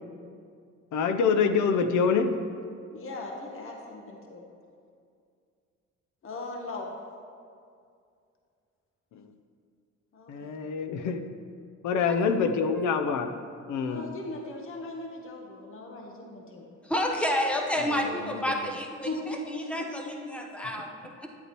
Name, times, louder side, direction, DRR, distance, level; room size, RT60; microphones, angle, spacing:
voice 1, 0.9-2.3 9.1-9.3 10.3-11.3 11.8-13.3 13.7-14.1 17.9-18.4, left 5 dB, 75° left, 8 dB, 0.7 m, -26 dB
voice 2, 2.9-4.4 6.2-6.9 10.1-10.6 13.9-16.7 19.0-20.1, left 2 dB, 45° left, 1 dB, 1.1 m, -38 dB
voice 3, 16.8-21.3, left 1 dB, 5° left, 1 dB, 1.0 m, -30 dB
11.0 x 8.2 x 3.0 m, 2.3 s
cardioid pair, 90°, 30 cm